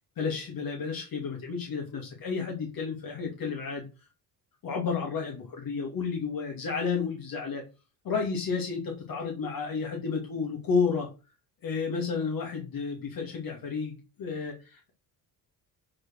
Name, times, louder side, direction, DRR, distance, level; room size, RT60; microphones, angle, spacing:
voice 1, 0.2-3.9 4.6-7.6 8.0-11.1 11.6-14.9, left 5 dB, 55° left, 0 dB, 2.8 m, -31 dB
9.5 x 4.5 x 6.4 m, 0.30 s
cardioid pair, 140°, 40 cm